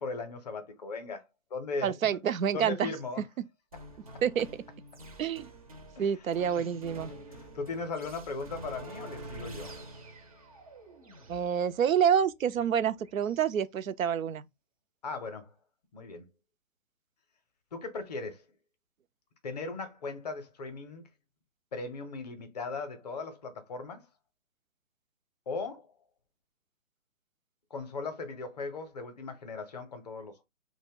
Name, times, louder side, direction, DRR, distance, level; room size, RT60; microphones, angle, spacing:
voice 1, 0.0-2.0 2.5-3.2 6.0-6.1 7.1-9.7 15.0-15.5 15.9-16.3 17.7-18.4 19.4-21.1 21.7-24.1 25.5-25.9 27.7-30.4, left 4 dB, 35° left, 0.5 m, -38 dB
voice 2, 1.8-2.9 4.2-4.5 5.2-5.5 6.0-7.1 11.3-14.4, right 8 dB, 90° right, 0.5 m, -28 dB
sound 1, 3.7-13.5, right 1 dB, 30° right, 0.4 m, -47 dB
2.4 x 2.1 x 3.5 m
hypercardioid pair, 145°, 39 cm